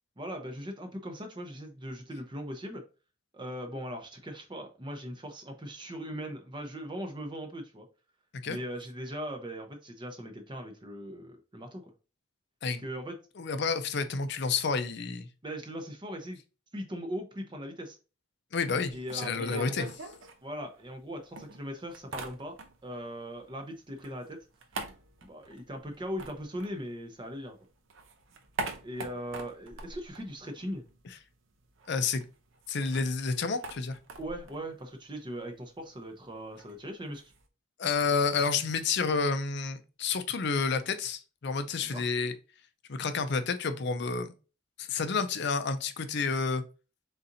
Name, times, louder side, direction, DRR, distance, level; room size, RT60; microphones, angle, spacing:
voice 1, 0.2-2.8 3.3-7.9 8.5-11.9 12.8-13.2 15.4-16.4 16.7-18.0 18.9-19.9 20.4-22.6 22.8-24.4 25.2-27.6 28.8-30.8 34.2-37.3 41.9-42.1, equal, 25° right, 0.7 m, -39 dB
voice 2, 13.4-15.3 18.5-19.9 31.9-32.2 32.7-34.0 37.8-42.3 42.9-44.3 44.8-46.6, left 4 dB, 60° left, 0.5 m, -30 dB
sound 1, 18.8-21.0 21.4-23.0 23.3-27.4 27.7-31.0 31.3-31.4 31.6-37.4, right 3 dB, 80° right, 0.7 m, -44 dB
4.1 x 3.8 x 2.6 m
head